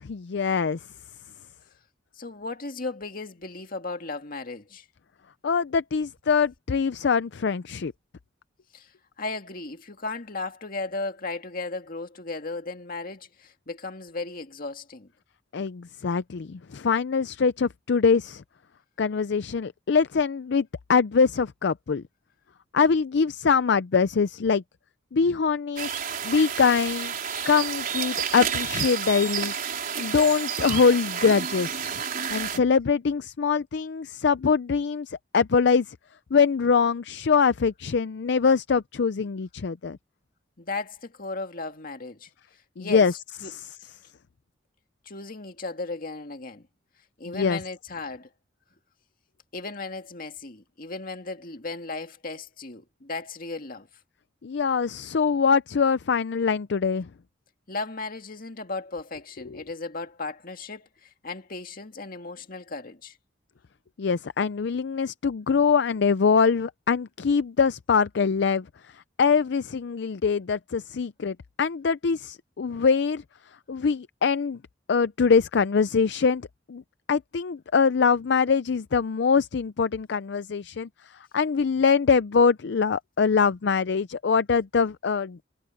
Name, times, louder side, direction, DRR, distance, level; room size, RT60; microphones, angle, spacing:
voice 1, 0.0-0.8 5.4-7.9 15.5-18.4 19.0-22.0 22.7-24.6 25.1-25.9 26.2-27.1 27.5-29.5 30.0-32.0 32.3-36.0 36.3-40.0 42.8-43.1 43.5-43.7 47.3-47.6 54.4-57.1 59.4-59.6 64.0-68.7 68.9-73.2 73.7-74.6 74.9-76.8 77.1-85.4, left 5 dB, 65° left, 0.5 m, -23 dB
voice 2, 2.2-4.9 8.7-8.9 9.2-15.1 40.6-42.3 42.8-43.1 43.4-43.5 45.1-46.7 47.2-48.3 49.5-53.9 57.7-63.2, left 3 dB, 50° left, 2.0 m, -35 dB
sound 1, 25.8-32.6, right 7 dB, 50° right, 4.5 m, -30 dB
head